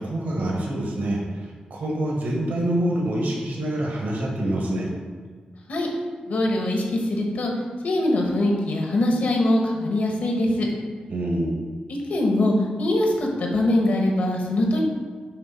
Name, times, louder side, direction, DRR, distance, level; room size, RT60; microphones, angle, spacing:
voice 1, 0.0-4.9 11.1-11.6, right 1 dB, 85° right, -2 dB, 1.4 m, -26 dB
voice 2, 6.3-7.5 7.8-10.7 12.1-14.8, left 1 dB, 75° left, 0 dB, 1.3 m, -22 dB
6.7 x 3.3 x 5.7 m, 1.5 s
wide cardioid pair, 150°, 3 cm